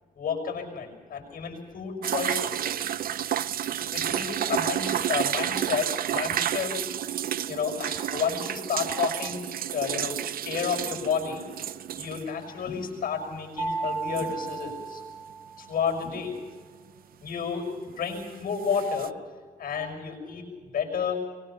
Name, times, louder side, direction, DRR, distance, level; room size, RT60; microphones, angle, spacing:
voice 1, 0.2-2.7 3.6-6.8 7.4-9.4 9.7-10.2 10.4-11.5 12.0-15.0 15.6-16.4 17.2-17.7 18.0-19.1 19.6-20.5 20.7-21.2, left 6 dB, 70° left, 2 dB, 6.2 m, -31 dB
sound 1, 2.0-12.3 12.6-12.7 13.8-14.7 18.2-18.3 18.6-19.1, right 10 dB, 75° right, 0.6 m, -30 dB
sound 2, 13.6-15.7, right 4 dB, 25° right, 6.6 m, -34 dB
23.5 x 20.5 x 5.8 m, 1.6 s
wide cardioid pair, 125°, 15 cm